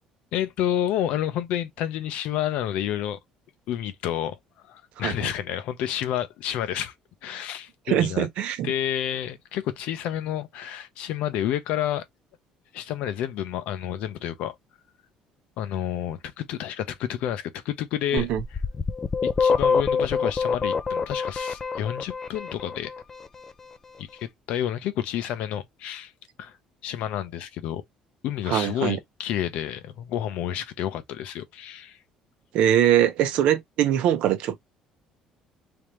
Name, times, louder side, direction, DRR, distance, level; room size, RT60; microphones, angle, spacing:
voice 1, 0.3-3.2 3.7-4.4 4.6-6.9 7.2-8.3 8.6-12.0 12.7-14.5 15.6-18.3 19.2-22.9 24.0-26.1 26.4-26.5 26.8-27.8 28.2-32.0, left 11 dB, 70° left, 0.6 m, -29 dB
voice 2, 5.0-5.3 7.9-8.7 18.1-18.4 28.5-29.0 32.5-34.6, right 11 dB, 65° right, 0.7 m, -22 dB
sound 1, 18.2-23.0, left 5 dB, 20° left, 0.4 m, -25 dB
3.4 x 2.9 x 3.0 m
cardioid pair, 155°, 2 cm